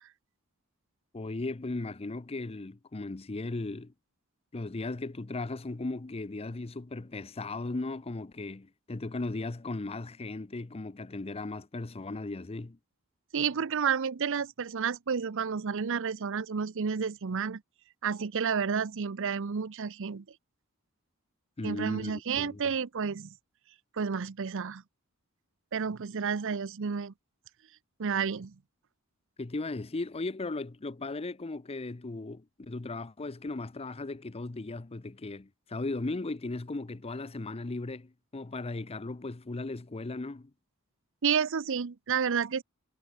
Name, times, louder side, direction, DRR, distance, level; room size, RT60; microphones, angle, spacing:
voice 1, 1.1-3.9 4.5-12.8 21.6-22.6 29.4-40.5, left 2 dB, 30° left, 0.6 m, -37 dB
voice 2, 13.3-17.6 18.0-20.2 21.6-23.3 23.9-24.8 25.7-27.1 28.0-28.5 41.2-42.6, right 6 dB, 65° right, 0.6 m, -30 dB
head